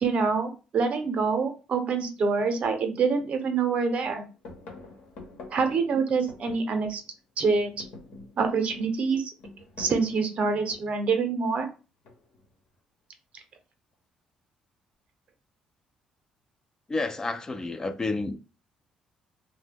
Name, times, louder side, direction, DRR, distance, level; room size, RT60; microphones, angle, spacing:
voice 1, 0.0-4.2 5.5-7.0 7.4-7.9 8.4-9.3 9.8-11.7, right 5 dB, 55° right, 0.6 m, -26 dB
sound 1, 2.6-2.7 3.2-3.7 4.0-7.2 7.5-11.1 12.0-12.5, left 3 dB, 80° left, 1.0 m, -46 dB
voice 2, 16.9-18.4, left 3 dB, 25° left, 0.3 m, -30 dB
2.7 x 2.1 x 3.6 m
cardioid pair, 90°, 3 cm